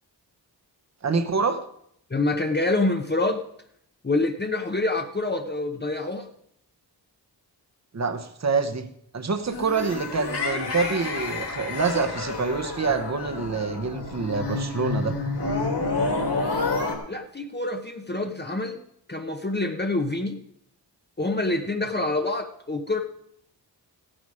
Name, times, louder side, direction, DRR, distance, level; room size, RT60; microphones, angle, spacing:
voice 1, 1.0-1.6 7.9-8.9 9.1-15.1, right 4 dB, 35° right, 9 dB, 1.1 m, -26 dB
voice 2, 2.1-3.5 4.0-6.3 17.1-18.8 19.1-20.4 21.2-23.0, left 2 dB, 25° left, 4 dB, 0.9 m, -26 dB
sound 1, 9.5-17.0, left 3 dB, 65° left, 2.9 m, -29 dB
16.0 x 8.9 x 4.9 m, 0.72 s
wide cardioid pair, 100°, 44 cm